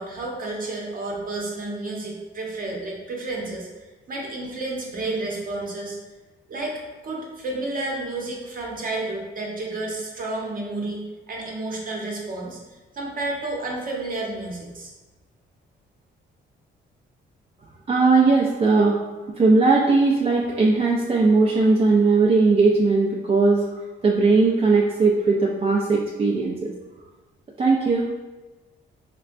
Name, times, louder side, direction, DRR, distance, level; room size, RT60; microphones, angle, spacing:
voice 1, 0.0-3.7 4.1-6.0 6.5-11.0 11.3-14.9, right 2 dB, 45° right, -1 dB, 0.8 m, -31 dB
voice 2, 17.9-19.0 19.4-23.6 24.0-26.7 27.6-28.1, right 3 dB, 30° right, -3 dB, 0.4 m, -18 dB
4.2 x 2.2 x 2.4 m, 1.2 s
cardioid pair, 90°, 20 cm